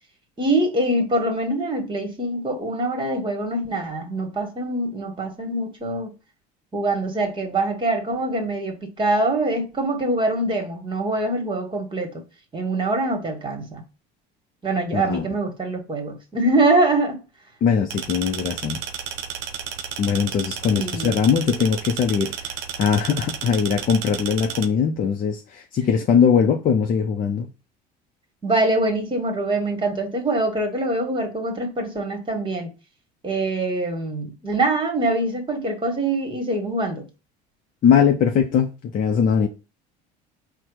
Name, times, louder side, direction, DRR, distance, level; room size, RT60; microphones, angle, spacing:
voice 1, 0.4-6.1 6.7-12.1 12.5-13.8 14.6-17.2 20.7-21.1 28.4-32.7 33.2-37.0, right 2 dB, 25° right, 1.6 m, -24 dB
voice 2, 14.9-15.2 17.6-18.8 20.0-22.5 22.8-27.5 37.8-38.7 38.9-39.5, left 7 dB, 40° left, 0.6 m, -20 dB
sound 1, 17.9-24.7, right 8 dB, 70° right, 0.7 m, -32 dB
4.3 x 2.2 x 4.7 m
supercardioid pair, 85°, 21 cm